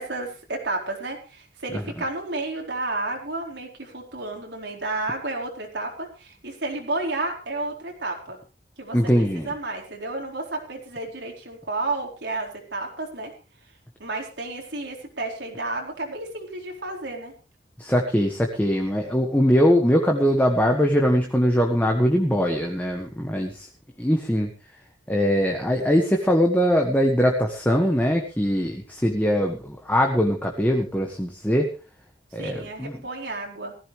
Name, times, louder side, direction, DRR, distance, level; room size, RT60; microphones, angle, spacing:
voice 1, 0.0-8.4 8.8-13.3 14.0-17.3 32.4-33.7, right 2 dB, 75° right, 1 dB, 4.4 m, -31 dB
voice 2, 8.9-9.5 17.8-23.7 24.0-24.5 25.1-31.7 32.3-33.0, equal, 10° left, 2 dB, 1.5 m, -21 dB
18.5 x 15.0 x 3.2 m, 0.32 s
head